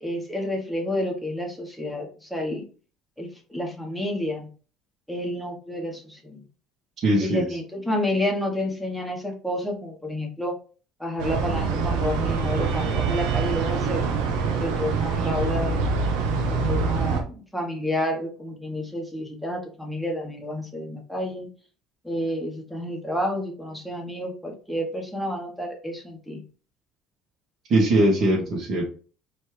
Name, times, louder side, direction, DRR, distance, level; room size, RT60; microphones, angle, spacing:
voice 1, 0.0-2.7 3.2-4.5 5.1-6.4 7.2-10.6 11.0-14.0 14.6-15.8 16.4-21.5 22.0-26.4, left 1 dB, ahead, 0 dB, 1.2 m, -30 dB
voice 2, 7.0-7.4 27.7-28.8, right 1 dB, 50° right, -4 dB, 2.0 m, -20 dB
sound 1, 11.2-17.2, right 5 dB, 85° right, 0.8 m, -25 dB
4.2 x 3.2 x 3.3 m, 0.39 s
cardioid pair, 130°, 0 cm